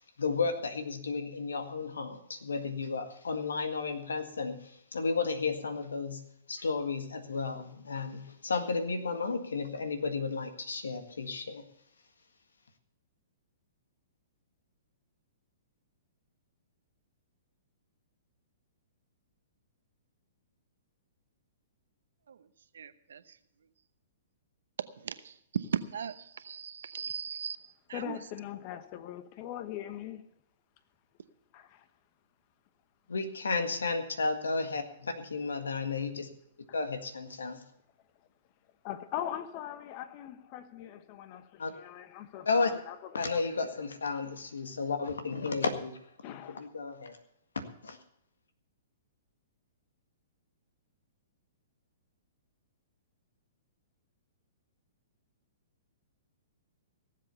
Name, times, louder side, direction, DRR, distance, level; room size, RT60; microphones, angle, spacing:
voice 1, 0.2-11.6 33.1-36.3 36.7-37.6 41.6-41.7 42.4-42.7 43.1-46.0 46.3-47.2 47.5-48.0, left 4 dB, 80° left, 8 dB, 1.7 m, -33 dB
voice 2, 22.7-23.4 25.0-28.2, right 7 dB, 70° right, 12 dB, 0.9 m, -38 dB
voice 3, 27.9-30.2 31.5-31.9 38.8-43.6 46.2-46.7, left 11 dB, 40° left, 11 dB, 1.2 m, -41 dB
17.5 x 7.6 x 6.9 m, 0.76 s
hypercardioid pair, 120°, 0 cm